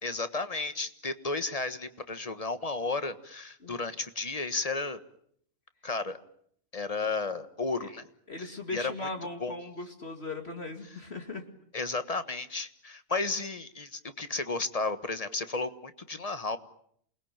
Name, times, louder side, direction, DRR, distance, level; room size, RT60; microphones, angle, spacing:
voice 1, 0.0-5.0 5.8-6.2 6.7-8.0 8.4-9.1 9.4-9.5 11.7-16.6, left 3 dB, 25° left, 11 dB, 1.4 m, -33 dB
voice 2, 8.3-11.4, left 2 dB, 45° left, 5 dB, 2.5 m, -38 dB
28.0 x 21.0 x 9.0 m, 0.67 s
omnidirectional pair, 1.4 m